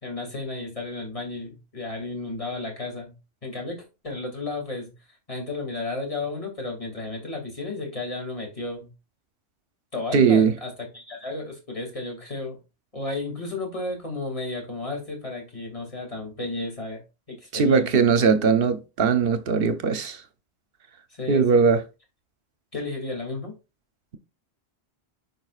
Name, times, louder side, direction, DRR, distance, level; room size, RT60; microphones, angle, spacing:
voice 1, 0.0-3.2 3.4-4.9 5.3-8.9 9.9-12.6 12.9-17.0 17.3-17.9 21.1-21.7 22.7-23.5, left 2 dB, 30° left, 2.5 m, -33 dB
voice 2, 10.1-10.5 17.5-20.2 21.3-21.8, right 5 dB, 60° right, 1.0 m, -20 dB
9.3 x 5.4 x 2.4 m
omnidirectional pair, 1.1 m